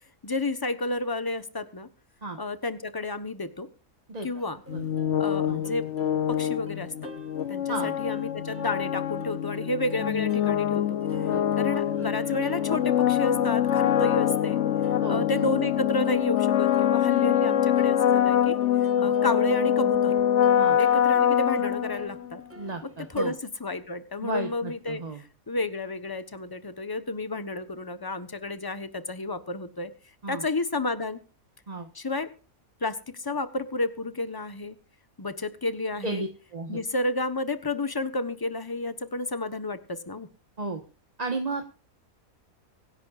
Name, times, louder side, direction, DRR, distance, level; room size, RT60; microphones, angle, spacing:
voice 1, 0.2-1.9 2.4-3.7 4.2-4.6 5.2-5.8 6.3-7.1 7.5-11.0 11.6-14.6 15.1-20.1 20.8-22.4 22.8-23.3 23.6-25.0 25.5-29.9 30.3-31.2 31.9-32.3 32.8-34.8 35.2-36.2 36.7-40.3, left 2 dB, 15° left, 10 dB, 1.1 m, -31 dB
Plucked string instrument, 4.4-23.3, right 3 dB, 10° right, 1.4 m, -48 dB
sound 1, 4.7-22.3, left 10 dB, 60° left, 1.0 m, -24 dB
voice 2, 15.0-15.5 18.9-19.1 20.6-20.8 22.5-23.3 24.2-25.2 30.2-30.4 31.7-31.9 36.0-36.8 40.6-40.8 41.2-41.7, right 2 dB, 30° right, 4 dB, 1.4 m, -33 dB
25.0 x 10.5 x 2.5 m, 0.37 s
omnidirectional pair, 1.5 m